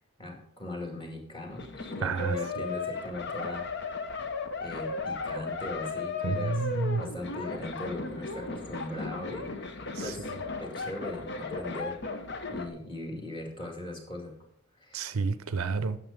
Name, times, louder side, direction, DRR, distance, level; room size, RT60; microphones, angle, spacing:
voice 1, 0.2-3.6 4.6-6.6 7.0-10.3 10.6-12.0 12.5-14.3 14.8-15.0, left 1 dB, 20° left, 0 dB, 2.0 m, -39 dB
sound 1, 1.5-12.7, left 3 dB, 50° left, 0.8 m, -36 dB
voice 2, 2.0-2.7 6.2-7.0 9.9-10.4 14.9-16.0, right 4 dB, 65° right, 12 dB, 0.6 m, -30 dB
9.3 x 6.8 x 5.1 m, 0.71 s
head